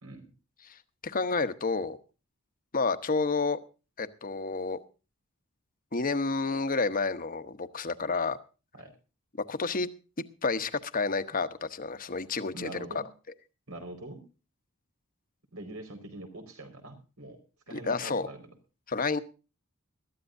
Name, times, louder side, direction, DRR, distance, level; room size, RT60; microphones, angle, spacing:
voice 1, 1.0-2.0 2.7-3.6 4.0-4.8 5.9-8.4 9.5-9.9 10.4-12.7 17.7-18.3 18.9-19.2, left 4 dB, 40° left, 11 dB, 1.0 m, -30 dB
voice 2, 12.5-13.1 13.7-14.2 15.5-17.4 17.7-18.5, right 2 dB, 85° right, 4 dB, 4.7 m, -43 dB
21.5 x 13.5 x 2.6 m, 0.34 s
head